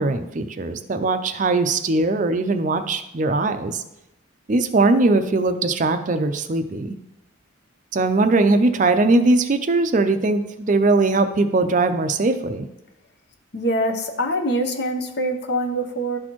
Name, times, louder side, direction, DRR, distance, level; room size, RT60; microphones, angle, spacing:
voice 1, 0.0-3.8 4.5-7.0 7.9-12.7, right 3 dB, 40° right, 8 dB, 0.4 m, -20 dB
voice 2, 13.5-16.2, equal, 55° left, 5 dB, 0.8 m, -24 dB
12.0 x 4.2 x 3.0 m, 0.85 s
head